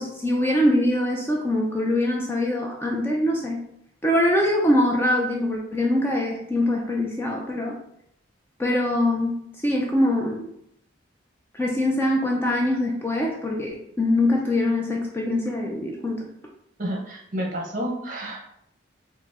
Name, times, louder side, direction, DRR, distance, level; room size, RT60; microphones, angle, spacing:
voice 1, 0.0-3.6 4.0-7.7 8.6-9.3 9.6-10.5 11.5-16.3, left 1 dB, 10° left, -1 dB, 0.4 m, -23 dB
voice 2, 16.8-18.4, equal, 40° right, -1 dB, 0.9 m, -30 dB
4.5 x 2.0 x 3.6 m, 0.75 s
head